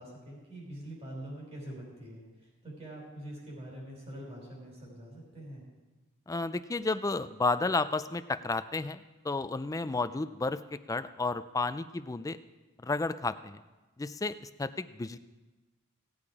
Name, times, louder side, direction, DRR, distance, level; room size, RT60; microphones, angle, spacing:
voice 1, 0.0-5.6, right 1 dB, 30° right, -3 dB, 5.0 m, -44 dB
voice 2, 6.3-12.4 12.8-13.6 14.0-15.2, left 3 dB, 15° left, 12 dB, 0.4 m, -32 dB
17.0 x 8.8 x 4.9 m, 1.2 s
head